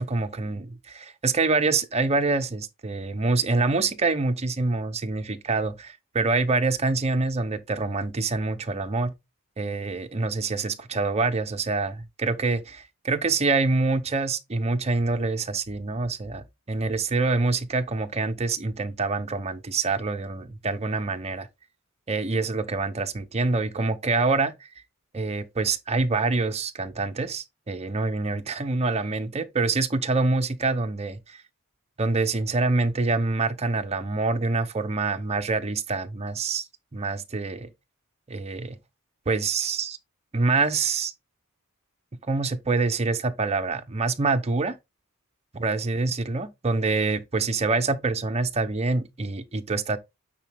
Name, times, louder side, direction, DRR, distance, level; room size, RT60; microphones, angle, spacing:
voice 1, 0.0-9.1 9.6-21.5 22.1-24.5 25.1-31.4 32.0-36.6 36.9-37.7 38.3-38.8 39.3-40.0 40.3-41.1 42.3-44.7 45.5-50.0, right 3 dB, 30° right, 0.7 m, -26 dB
8.9 x 4.2 x 3.5 m
head